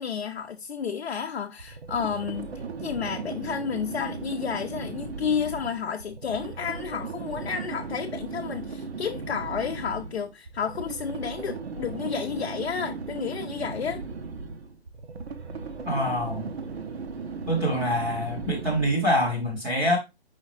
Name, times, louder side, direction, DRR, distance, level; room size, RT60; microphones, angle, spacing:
voice 1, 0.0-14.0, left 7 dB, 70° left, 0.6 m, -31 dB
sound 1, 1.6-19.2, right 4 dB, 70° right, 0.8 m, -37 dB
voice 2, 15.9-16.5 17.5-20.0, equal, 5° right, 0.5 m, -25 dB
5.0 x 3.7 x 2.9 m
figure-of-eight pair, 140°, 32 cm